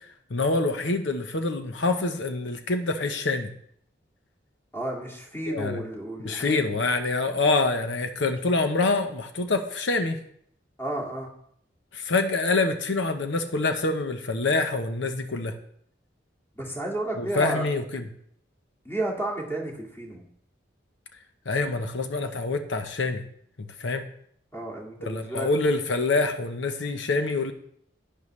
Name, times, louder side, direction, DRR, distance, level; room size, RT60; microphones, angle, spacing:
voice 1, 0.3-3.5 5.5-5.8 6.2-10.2 11.9-15.5 17.2-18.1 21.5-23.2 23.8-24.0 25.0-27.5, left 3 dB, 85° left, 7 dB, 0.9 m, -26 dB
voice 2, 4.7-6.8 10.8-11.3 16.5-17.6 18.8-20.2 24.5-25.5, right 1 dB, 10° left, -2 dB, 2.1 m, -32 dB
11.0 x 10.0 x 3.2 m, 0.67 s
head